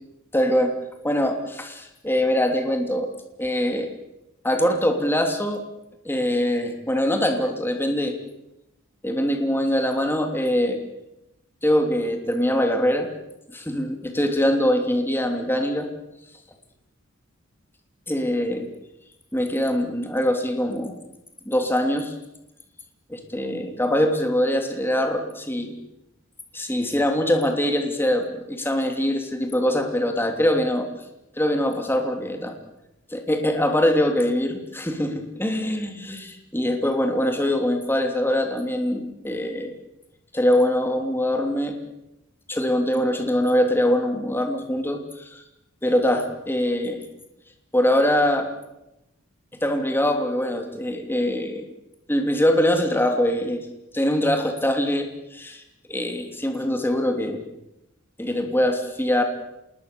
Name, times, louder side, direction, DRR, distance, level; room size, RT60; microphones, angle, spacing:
voice 1, 0.3-0.7 1.0-3.1 3.4-3.9 4.4-5.6 6.0-8.2 9.0-10.8 11.6-13.1 13.5-15.9 18.1-18.7 19.3-21.0 21.4-22.1 23.1-25.8 26.5-30.9 31.4-32.5 33.1-39.7 40.3-41.7 42.5-45.4 45.8-47.0 47.7-48.5 49.6-51.6 52.1-53.6 53.9-55.6 55.9-57.4 58.2-59.2, left 1 dB, 10° left, 4 dB, 3.1 m, -23 dB
27.5 x 21.0 x 7.0 m, 0.90 s
head